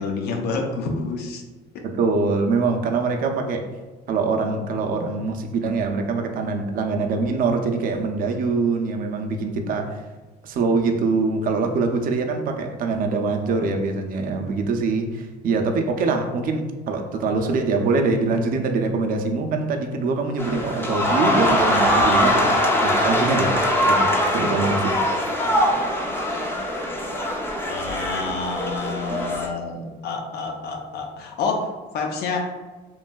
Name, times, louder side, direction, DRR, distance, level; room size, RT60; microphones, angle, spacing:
voice 1, 0.0-1.4 1.7-1.9 27.7-32.6, left 4 dB, 70° left, 3 dB, 0.5 m, -28 dB
voice 2, 1.8-3.7 4.1-10.0 10.4-22.5 22.8-23.6 23.8-25.0, right 4 dB, 55° right, 4 dB, 0.4 m, -24 dB
sound 1, 20.4-29.5, equal, 15° left, 0.5 m, -22 dB
3.0 x 2.5 x 2.2 m, 1.2 s
cardioid pair, 110°, 17 cm